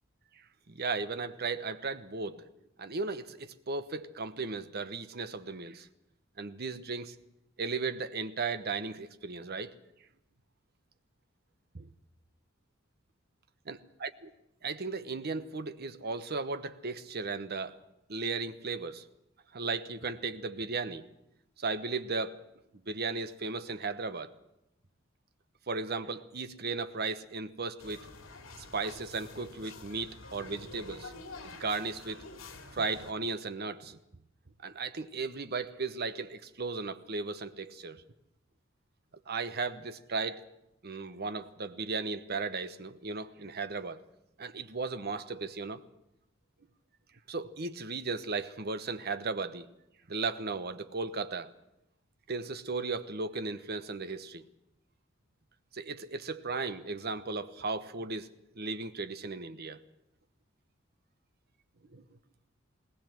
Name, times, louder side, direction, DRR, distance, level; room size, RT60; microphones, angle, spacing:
voice 1, 0.7-2.5 2.8-5.9 6.4-7.2 7.6-9.7 11.7-11.9 13.7-14.3 14.6-17.8 18.1-19.1 19.5-21.0 21.6-22.4 22.9-24.3 25.7-28.1 28.6-31.1 31.4-32.2 32.7-34.0 34.6-38.0 39.3-40.5 40.8-44.0 44.4-45.8 47.3-49.7 50.1-51.5 52.3-54.4 55.7-58.3 58.5-59.8 61.9-62.0, right 4 dB, 50° right, 1.0 m, -36 dB
sound 1, 27.8-33.1, left 3 dB, 85° left, 2.6 m, -48 dB
20.0 x 19.5 x 7.7 m
head